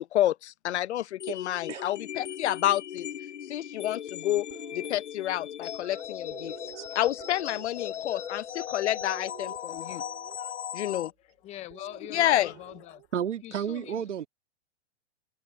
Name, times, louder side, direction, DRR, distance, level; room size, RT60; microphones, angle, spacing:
voice 1, 0.0-3.1 3.5-4.4 4.7-6.5 6.9-10.0 10.7-11.1 12.1-12.5, left 13 dB, 70° left, 1.0 m, -29 dB
sound 1, 1.2-11.1, left 9 dB, 90° left, 1.3 m, -38 dB
sound 2, 4.4-5.0 5.8-8.7 9.0-10.5 11.7-13.1, right 31 dB, 40° right, 5.9 m, -50 dB
voice 2, 11.4-13.0 13.4-14.0, left 14 dB, 20° left, 0.6 m, -42 dB
voice 3, 13.1-14.3, right 9 dB, 90° right, 1.9 m, -32 dB
hypercardioid pair, 140°, 35 cm